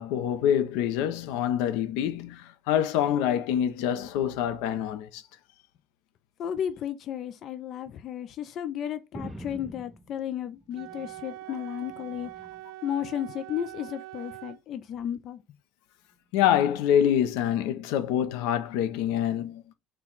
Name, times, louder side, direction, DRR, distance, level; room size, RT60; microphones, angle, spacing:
voice 1, 0.0-5.2 16.3-19.7, left 10 dB, 85° left, 0.6 m, -26 dB
voice 2, 6.4-12.3 12.8-15.4, left 10 dB, 40° left, 0.3 m, -33 dB
sound 1, 9.1-11.4 11.7-12.7 13.5-13.9 14.9-15.1, equal, ahead, 0.6 m, -45 dB
Wind instrument woodwind instrument, 10.7-14.6, right 17 dB, 65° right, 0.4 m, -43 dB
4.5 x 2.2 x 3.8 m
cardioid pair, 165°, 0 cm